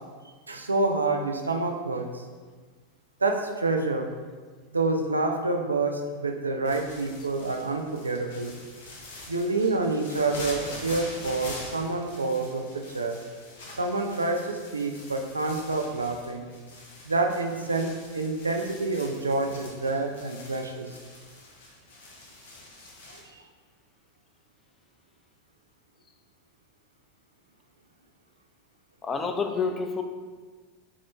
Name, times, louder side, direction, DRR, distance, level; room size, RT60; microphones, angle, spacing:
voice 1, 0.5-2.2 3.2-4.1 4.7-8.6 9.3-13.2 13.8-16.5 17.0-20.9 23.1-23.2, right 3 dB, 85° right, 3 dB, 0.3 m, -28 dB
sound 1, 6.6-23.2, left 2 dB, 65° left, 0.7 m, -44 dB
voice 2, 29.0-30.0, left 5 dB, 25° left, 6 dB, 0.3 m, -28 dB
3.6 x 2.5 x 3.0 m, 1.5 s
figure-of-eight pair, 85°, 0 cm